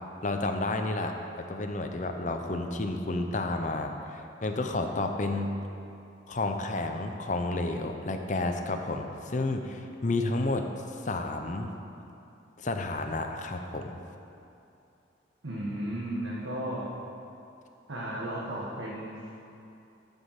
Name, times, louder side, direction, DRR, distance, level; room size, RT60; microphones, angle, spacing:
voice 1, 0.2-5.5 6.3-11.7 12.6-13.9, left 2 dB, 40° left, 4 dB, 0.6 m, -31 dB
voice 2, 15.4-17.0 17.9-19.3, right 1 dB, 85° right, -5 dB, 1.3 m, -34 dB
14.0 x 5.3 x 5.8 m, 2.7 s
head